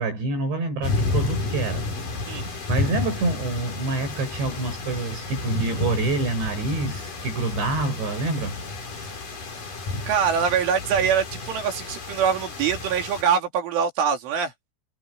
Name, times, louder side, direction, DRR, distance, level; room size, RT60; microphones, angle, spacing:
voice 1, 0.0-1.9 2.4-8.6, right 2 dB, 65° right, 8.5 m, -27 dB
sound 1, 0.8-13.2, left 2 dB, 45° left, 7.0 m, -31 dB
voice 2, 10.1-14.5, right 7 dB, 80° right, 5.6 m, -23 dB
omnidirectional pair, 5.5 m